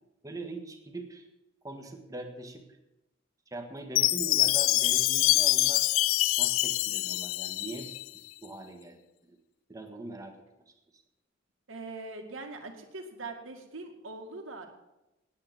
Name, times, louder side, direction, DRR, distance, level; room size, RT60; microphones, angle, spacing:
voice 1, 0.2-1.2 1.6-2.6 3.5-5.8 6.4-7.9 8.4-9.0 9.3-9.4 9.7-10.3 10.9-11.0, right 2 dB, 15° right, 5 dB, 1.6 m, -41 dB
Chime, 4.0-8.1, left 17 dB, 85° left, 0.4 m, -25 dB
voice 2, 11.7-14.7, right 3 dB, 80° right, 3 dB, 2.2 m, -42 dB
9.9 x 8.3 x 9.5 m, 0.95 s
head